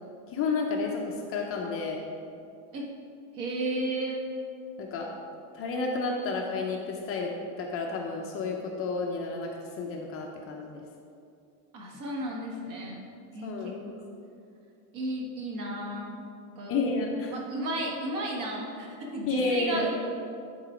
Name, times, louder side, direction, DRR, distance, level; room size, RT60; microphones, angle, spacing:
voice 1, 0.3-2.0 4.8-5.1 5.5-7.3 7.6-9.5 9.8-10.8 13.4-14.0 16.7-17.3 19.3-19.9, left 3 dB, 30° left, 0 dB, 0.7 m, -31 dB
voice 2, 3.3-4.2 11.7-13.0 13.3-13.7 14.9-16.2 16.6-16.8 17.3-19.9, right 1 dB, 45° right, -2 dB, 1.7 m, -33 dB
10.5 x 4.0 x 5.0 m, 2.5 s
supercardioid pair, 155°, 44 cm